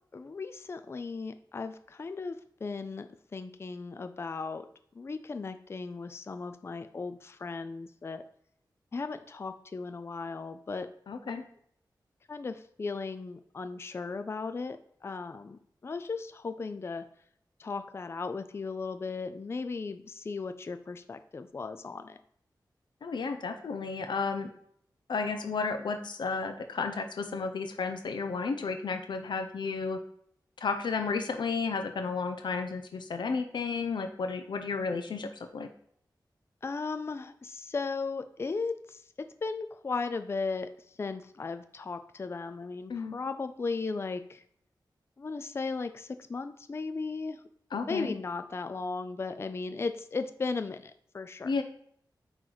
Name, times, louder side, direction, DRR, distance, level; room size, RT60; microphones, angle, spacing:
voice 1, 0.1-4.7 5.0-8.2 8.9-10.9 11.3-11.4 12.3-17.0 17.6-22.2 36.6-39.0 39.4-40.7 41.0-44.4 45.2-47.4 47.9-51.5, left 4 dB, 35° left, 9 dB, 0.4 m, -36 dB
voice 2, 11.1-11.4 23.0-24.5 25.1-30.0 30.6-35.7 42.9-43.2 47.7-48.1 51.4-51.6, left 4 dB, 80° left, 7 dB, 0.6 m, -32 dB
8.8 x 3.1 x 3.9 m, 0.67 s
wide cardioid pair, 130°, 8 cm